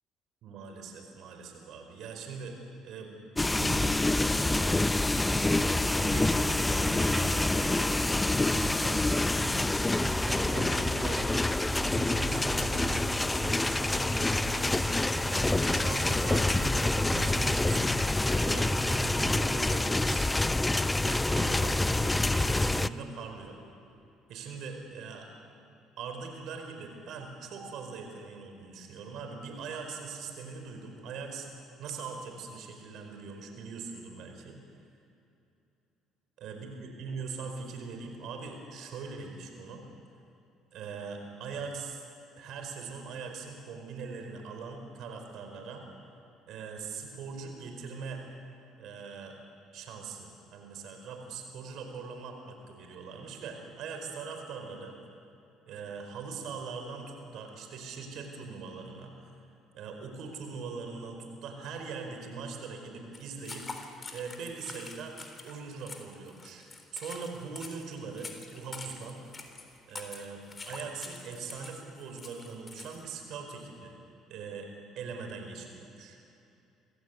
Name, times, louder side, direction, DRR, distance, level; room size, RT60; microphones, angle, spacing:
voice 1, 0.4-2.6 2.8-4.8 5.1-5.8 6.1-9.0 10.2-11.3 11.9-20.7 21.0-23.6 24.3-25.3 26.0-31.5 31.8-34.6 36.4-39.9 40.7-42.0 42.3-45.8 46.5-48.2 48.8-49.4 49.7-54.9 55.7-59.1 59.7-65.2 65.4-66.6 66.9-69.2 69.9-73.9 74.3-74.7 75.0-76.2, right 5 dB, 70° right, 4 dB, 4.7 m, -41 dB
sound 1, 3.4-22.9, left 2 dB, 15° left, 0.6 m, -27 dB
sound 2, 5.1-19.4, right 2 dB, 20° right, 4.3 m, -39 dB
sound 3, 63.1-73.1, left 3 dB, 30° left, 3.5 m, -45 dB
26.5 x 16.0 x 8.4 m, 2.8 s
supercardioid pair, 80°, 0 cm